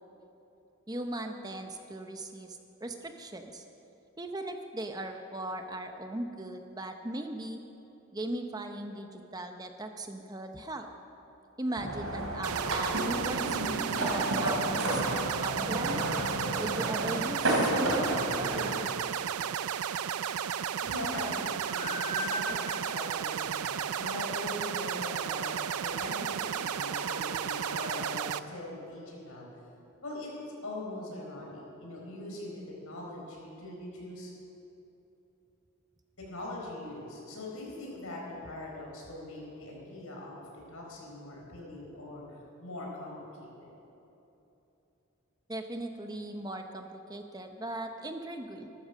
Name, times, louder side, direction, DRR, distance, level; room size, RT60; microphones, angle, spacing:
voice 1, 0.9-3.6 4.2-7.6 8.1-10.9 11.6-16.0 16.6-18.5 45.5-48.7, right 1 dB, 15° right, 5 dB, 0.7 m, -38 dB
sound 1, 11.8-18.7, right 1 dB, 70° right, 2.9 m, -31 dB
sound 2, 12.4-28.4, right 9 dB, 90° right, 0.4 m, -33 dB
voice 2, 20.8-25.4 25.7-29.5 30.0-30.3 30.6-34.3 36.2-40.4 40.7-43.7, left 1 dB, 80° left, -2 dB, 4.3 m, -41 dB
sound 3, 21.6-28.6, equal, 35° left, 3.0 m, -42 dB
14.0 x 12.5 x 6.5 m, 3.0 s
head